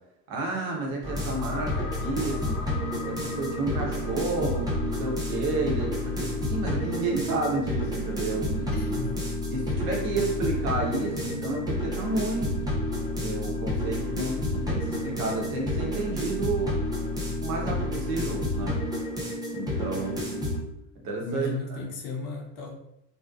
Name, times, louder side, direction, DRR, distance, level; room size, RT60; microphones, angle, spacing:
voice 1, 0.3-2.6 3.0-9.0 9.5-12.6 13.2-16.9 17.4-18.8 19.5-20.5 20.9-21.8, right 2 dB, 45° right, -1 dB, 0.9 m, -31 dB
sound 1, 1.0-20.6, left 1 dB, 10° right, 0.5 m, -30 dB
voice 2, 8.7-9.2 19.9-20.2 21.2-22.8, left 2 dB, 50° left, 0 dB, 0.6 m, -35 dB
2.6 x 2.1 x 2.4 m, 0.81 s
figure-of-eight pair, 70°, 49 cm